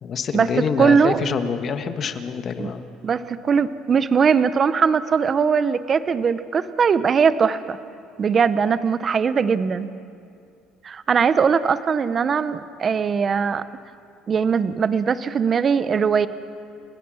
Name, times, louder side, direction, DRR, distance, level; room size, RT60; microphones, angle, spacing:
voice 1, 0.0-2.9, left 6 dB, 45° left, 8 dB, 1.6 m, -26 dB
voice 2, 0.8-1.2 2.6-2.7 3.0-7.8 8.2-9.9 10.8-13.6 14.3-16.3, right 6 dB, 40° right, 14 dB, 0.9 m, -20 dB
30.0 x 16.5 x 6.4 m, 2.4 s
supercardioid pair, 95°, 0 cm